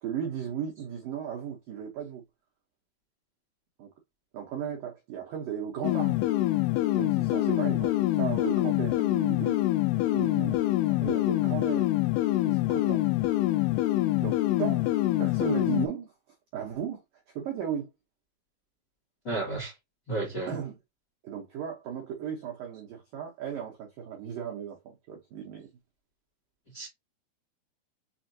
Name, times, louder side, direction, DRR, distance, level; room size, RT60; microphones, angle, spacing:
voice 1, 0.0-2.2 3.8-3.9 4.3-6.2 6.9-9.6 10.1-10.6 10.9-11.9 12.5-13.1 14.2-14.9 15.2-16.1 16.5-17.0 17.3-17.9 20.5-20.8 21.2-25.7, right 8 dB, 90° right, 1.9 m, -36 dB
sound 1, 5.8-15.9, left 17 dB, 90° left, 3.1 m, -25 dB
voice 2, 19.2-19.7 20.1-20.5 26.7-26.9, right 2 dB, 50° left, 1.3 m, -32 dB
7.0 x 2.7 x 2.7 m
omnidirectional pair, 5.5 m